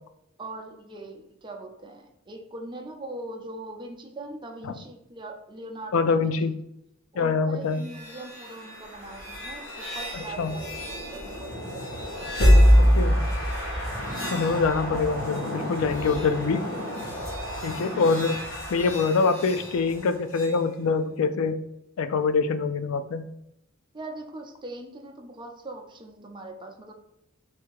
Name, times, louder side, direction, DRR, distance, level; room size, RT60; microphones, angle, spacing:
voice 1, 0.4-6.6 7.1-12.0 16.0-16.4 23.9-26.9, right 2 dB, 25° right, 2 dB, 0.6 m, -41 dB
voice 2, 5.9-6.5 7.2-7.8 10.4-10.5 12.4-13.2 14.3-16.6 17.6-18.4 18.7-21.6 22.0-23.2, left 4 dB, 90° left, 10 dB, 0.4 m, -25 dB
sound 1, 7.7-20.6, equal, 70° left, 1.3 m, -26 dB
3.4 x 2.8 x 4.6 m, 0.82 s
head